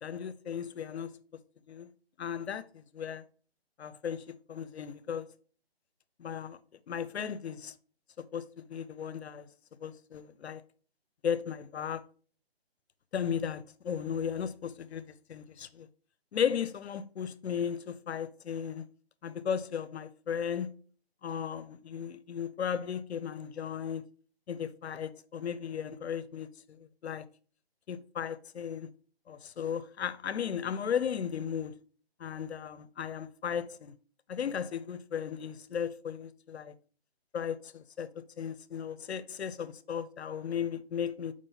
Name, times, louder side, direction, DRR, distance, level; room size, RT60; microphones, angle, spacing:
voice 1, 0.0-1.2 1.7-1.9 2.2-3.2 3.8-5.3 6.2-6.6 6.9-7.7 8.2-9.5 9.8-10.6 11.2-12.0 13.1-15.9 16.3-18.9 19.2-20.7 21.2-24.0 24.5-27.3 27.9-28.9 29.3-31.7 32.2-33.9 34.3-36.7 37.3-38.1 38.4-41.3, left 8 dB, 80° left, 0.5 m, -35 dB
4.8 x 3.7 x 2.7 m
hypercardioid pair, 160°, 32 cm